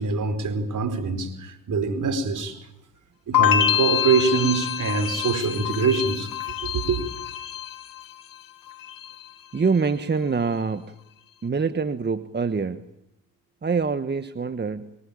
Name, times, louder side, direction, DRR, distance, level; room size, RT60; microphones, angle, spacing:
voice 1, 0.0-2.6 3.3-6.3 6.6-7.0, right 5 dB, 55° right, 4.8 m, -24 dB
sound 1, 3.3-8.4 8.7-9.3, left 11 dB, 65° left, 2.1 m, -26 dB
voice 2, 9.5-11.0 11.4-12.8 13.6-15.0, right 5 dB, 30° right, 1.3 m, -25 dB
24.5 x 23.0 x 8.9 m
supercardioid pair, 60°, 37 cm